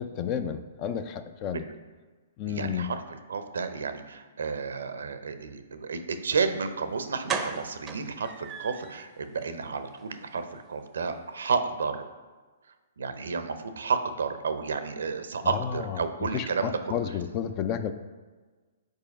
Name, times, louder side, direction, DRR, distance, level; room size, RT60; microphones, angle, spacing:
voice 1, 0.0-1.6 2.4-2.9 15.4-17.9, left 8 dB, 35° left, 11 dB, 0.4 m, -32 dB
voice 2, 2.5-12.1 13.0-17.1, right 5 dB, 80° right, 9 dB, 0.6 m, -31 dB
sound 1, 6.6-6.7 7.3-9.0 9.4-9.5 9.9-10.0 10.3-10.4, right 5 dB, 20° right, 0.6 m, -35 dB
5.4 x 4.5 x 5.2 m, 1.4 s
hypercardioid pair, 135°, 0 cm